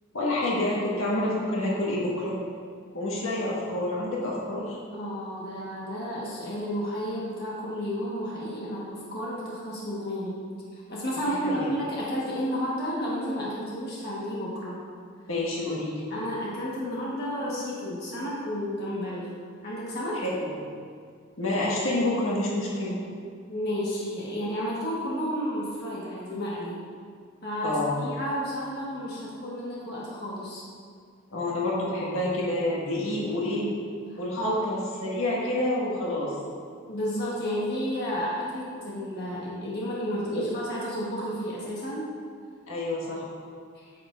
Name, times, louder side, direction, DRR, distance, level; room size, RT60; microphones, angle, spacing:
voice 1, 0.1-2.3 2.9-4.8 11.2-11.7 15.3-16.0 20.1-20.5 21.4-23.0 27.6-28.0 31.3-33.7 34.2-36.3 40.3-40.4 42.7-43.3, left 1 dB, 85° left, -5 dB, 1.7 m, -28 dB
voice 2, 4.9-10.4 10.7-14.8 16.1-19.3 19.6-20.2 23.5-26.8 27.4-30.6 34.1-34.6 36.9-42.1 43.7-43.8, equal, 55° left, -6 dB, 1.3 m, -32 dB
8.7 x 7.6 x 2.5 m, 2.1 s
head